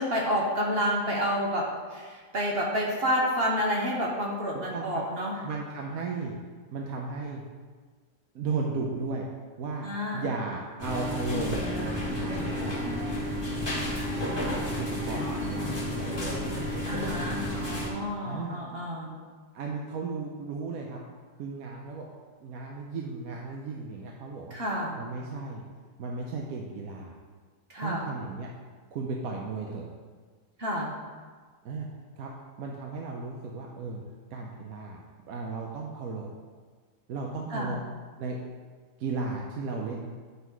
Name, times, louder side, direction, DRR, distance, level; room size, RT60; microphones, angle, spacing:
voice 1, 0.0-5.4 9.8-10.2 16.9-19.2 24.5-25.0 27.7-28.0 30.6-31.0 37.5-37.8, equal, 45° right, -2 dB, 0.9 m, -29 dB
voice 2, 4.7-5.0 5.4-6.4 6.7-7.4 8.3-9.3 9.6-9.9 10.1-12.8 14.8-16.4 18.2-18.6 19.5-21.0 21.4-22.1 22.4-24.6 25.0-25.6 26.0-27.2 27.8-28.5 28.9-29.9 31.6-31.9 32.2-32.3 32.6-34.0 34.3-36.3 37.1-37.8 38.2-38.4 39.0-40.1, right 4 dB, 65° right, 0 dB, 1.0 m, -35 dB
sound 1, 10.8-17.9, left 1 dB, 25° left, 1.9 m, -31 dB
8.2 x 4.0 x 4.6 m, 1.5 s
omnidirectional pair, 1.7 m